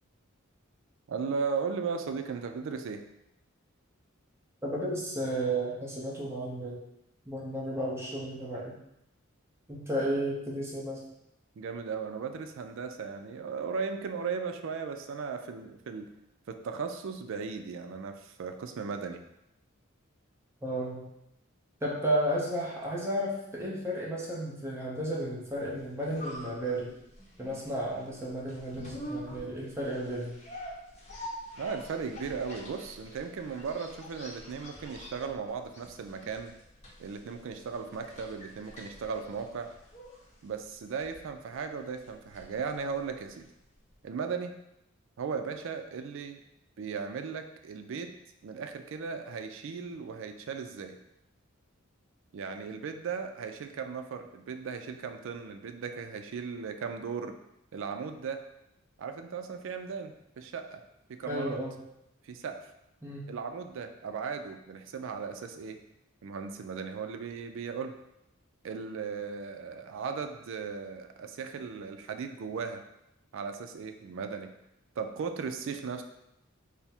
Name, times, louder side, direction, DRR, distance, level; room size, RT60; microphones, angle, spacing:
voice 1, 1.1-3.0 10.0-10.1 11.6-16.1 16.5-19.2 31.6-36.5 37.0-39.7 40.4-43.5 44.0-44.5 45.2-46.4 46.8-48.1 48.4-51.0 52.3-57.4 57.7-58.4 59.0-60.8 61.1-61.6 62.2-62.7 63.3-65.8 66.2-68.0 68.6-72.8 73.3-74.5 75.0-76.0, right 5 dB, 65° right, 7 dB, 0.4 m, -37 dB
voice 2, 4.6-6.8 7.3-8.8 9.7-11.0 20.6-21.1 21.8-26.9 27.4-30.4 61.3-61.8 63.0-63.3, right 1 dB, 15° right, -5 dB, 0.7 m, -33 dB
sound 1, 25.6-43.6 43.9-44.0, equal, 35° left, 0.8 m, -46 dB
3.5 x 2.1 x 4.2 m, 0.84 s
head